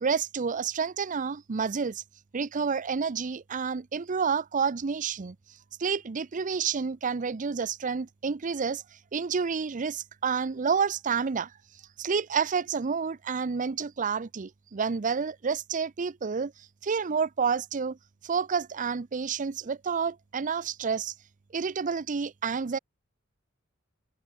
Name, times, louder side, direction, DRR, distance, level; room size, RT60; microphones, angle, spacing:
voice 1, 0.0-2.0 2.3-5.4 5.8-8.8 9.1-11.5 12.0-16.5 16.8-18.0 18.2-21.1 21.5-22.8, right 5 dB, 40° right, 0.5 m, -29 dB
open air
head